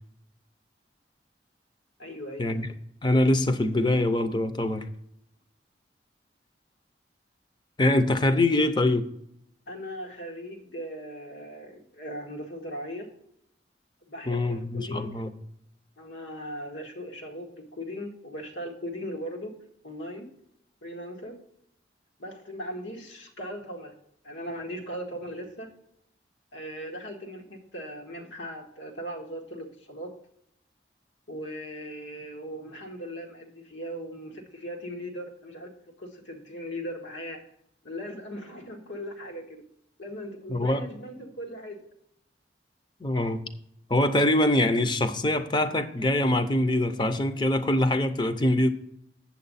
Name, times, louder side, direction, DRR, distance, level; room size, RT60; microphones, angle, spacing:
voice 1, 2.0-2.6 9.7-13.1 14.1-15.2 16.0-19.5 19.8-20.3 20.8-21.4 22.2-23.9 24.2-25.7 26.5-30.1 31.3-35.7 36.0-37.4 37.8-39.6 40.0-41.8, equal, 85° left, 1.8 m, -38 dB
voice 2, 3.0-4.8 7.8-9.1 14.3-15.3 40.5-40.8 43.0-43.4 43.9-48.7, left 1 dB, 25° left, 0.6 m, -24 dB
8.3 x 7.3 x 4.1 m
head